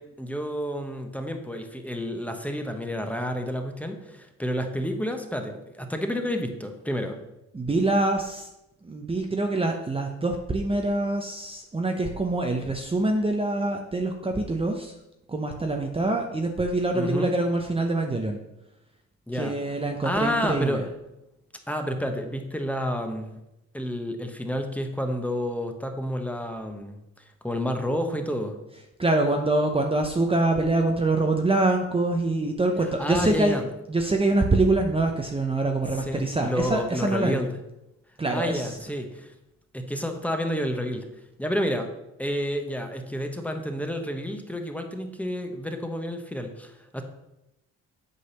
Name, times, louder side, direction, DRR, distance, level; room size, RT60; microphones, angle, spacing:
voice 1, 0.0-7.2 16.9-17.4 19.3-19.5 20.0-20.8 21.7-23.4 23.7-27.0 27.4-28.6 33.0-33.7 35.9-37.6 38.3-39.3 39.7-41.1 41.4-41.9 42.2-47.0, equal, 5° left, 5 dB, 1.1 m, -30 dB
voice 2, 7.5-8.5 8.8-14.9 15.3-18.4 19.3-20.8 29.0-33.6 33.9-37.4 38.2-38.7, right 2 dB, 20° right, 3 dB, 0.8 m, -25 dB
8.5 x 4.0 x 6.7 m, 0.90 s
cardioid pair, 90°, 30 cm